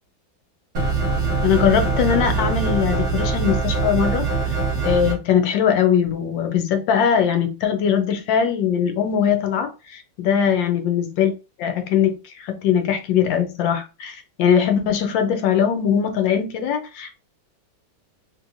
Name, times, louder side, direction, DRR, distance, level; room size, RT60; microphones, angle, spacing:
sound 1, 0.7-5.1, right 4 dB, 50° right, 1.1 m, -22 dB
voice 1, 1.4-4.3 4.8-11.3 11.6-17.2, left 8 dB, 75° left, 1.3 m, -21 dB
3.2 x 3.0 x 2.5 m
omnidirectional pair, 2.1 m